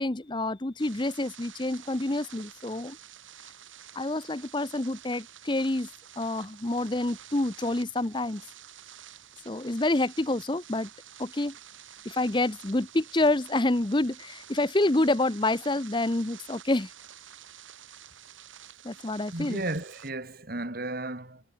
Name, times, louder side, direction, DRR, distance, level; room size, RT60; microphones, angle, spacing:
voice 1, 0.0-3.0 4.0-5.9 6.2-8.4 9.5-10.9 11.2-11.5 12.0-16.9 18.8-19.6, left 2 dB, 25° left, 0.8 m, -27 dB
sound 1, 0.8-20.1, right 10 dB, 85° right, 4.3 m, -50 dB
voice 2, 19.3-21.4, right 2 dB, 50° right, 2.7 m, -34 dB
head